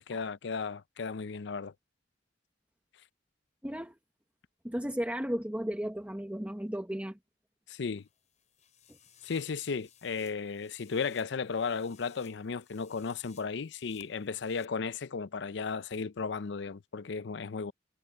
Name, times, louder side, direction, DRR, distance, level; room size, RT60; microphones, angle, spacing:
voice 1, 0.0-1.7 7.7-8.0 9.2-17.7, left 5 dB, 65° left, 0.5 m, -35 dB
voice 2, 3.6-3.9 4.6-7.2 8.9-9.0, equal, 10° right, 1.2 m, -34 dB
sound 1, 7.9-14.7, left 9 dB, 40° left, 6.7 m, -62 dB
head